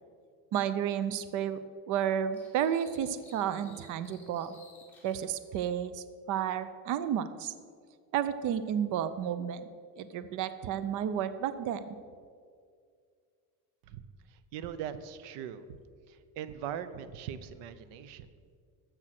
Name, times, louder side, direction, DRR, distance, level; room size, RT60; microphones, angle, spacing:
voice 1, 0.5-1.6 1.9-4.6 5.0-7.5 8.1-9.6 10.0-12.0, right 9 dB, 50° right, 13 dB, 0.6 m, -32 dB
sound 1, 2.3-5.2, left 3 dB, 5° left, 2.9 m, -58 dB
voice 2, 14.3-15.6 16.1-18.3, right 9 dB, 90° right, 13 dB, 0.8 m, -40 dB
12.5 x 7.8 x 5.9 m, 2.1 s
cardioid pair, 160°, 40 cm